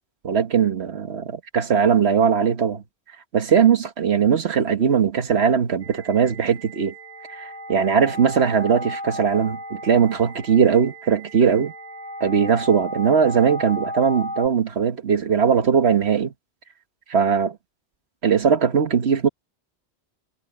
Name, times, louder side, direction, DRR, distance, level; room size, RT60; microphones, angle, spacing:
voice 1, 0.2-2.8 3.3-6.9 7.3-11.7 12.2-16.3 17.1-17.6 18.2-19.3, right 7 dB, 70° right, 1.5 m, -20 dB
sound 1, 5.8-14.5, equal, 30° left, 6.9 m, -35 dB
omnidirectional pair, 1.1 m